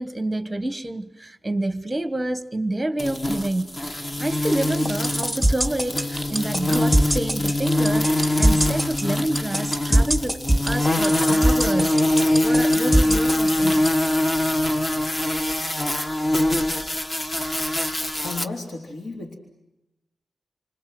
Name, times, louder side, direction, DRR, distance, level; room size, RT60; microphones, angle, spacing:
voice 1, 0.0-13.9, right 1 dB, 10° right, 1.3 m, -28 dB
sound 1, 3.0-18.4, left 1 dB, 25° left, 1.3 m, -23 dB
sound 2, 4.7-13.9, right 1 dB, 10° left, 1.9 m, -20 dB
voice 2, 18.2-19.4, left 3 dB, 75° left, 3.6 m, -33 dB
29.5 x 25.5 x 7.7 m
wide cardioid pair, 135°, 0 cm